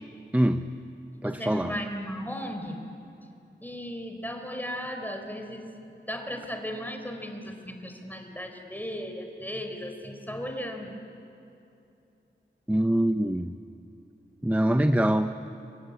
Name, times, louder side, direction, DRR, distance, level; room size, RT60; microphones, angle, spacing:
voice 1, 0.3-0.7 1.2-1.7 12.7-13.5 14.4-15.3, right 1 dB, 10° right, 8 dB, 0.8 m, -24 dB
voice 2, 1.2-2.8 3.6-5.7 6.1-11.0, equal, 10° left, 4 dB, 4.2 m, -36 dB
30.0 x 24.0 x 8.4 m, 2.8 s
wide cardioid pair, 60°, 19 cm